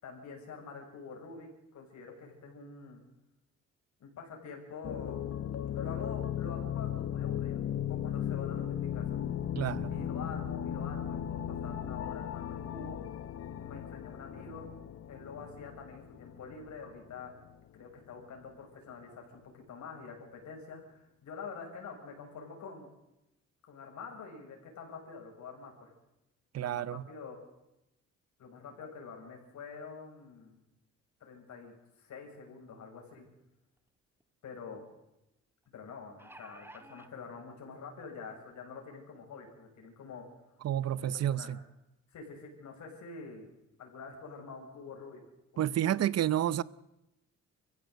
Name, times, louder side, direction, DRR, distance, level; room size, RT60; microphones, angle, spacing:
voice 1, 0.0-3.0 4.0-5.3 5.7-7.6 7.9-9.2 9.9-13.0 13.6-14.7 15.1-17.3 17.7-22.9 23.7-25.9 26.6-27.5 28.4-30.6 31.2-33.3 34.4-34.9 35.7-40.2 41.0-41.5 42.1-43.5 43.8-45.2 45.5-46.1, left 5 dB, 70° left, 7.0 m, -46 dB
sound 1, 4.8-17.5, left 10 dB, 50° left, 0.9 m, -36 dB
voice 2, 9.6-9.9 26.5-27.1 40.6-41.6 45.6-46.6, right 11 dB, 55° right, 0.8 m, -30 dB
sound 2, 33.8-33.9 34.2-34.3 35.9-37.1 38.0-38.1 38.5-38.6, right 1 dB, 5° right, 1.7 m, -52 dB
23.0 x 15.5 x 8.0 m
cardioid pair, 90°, 30 cm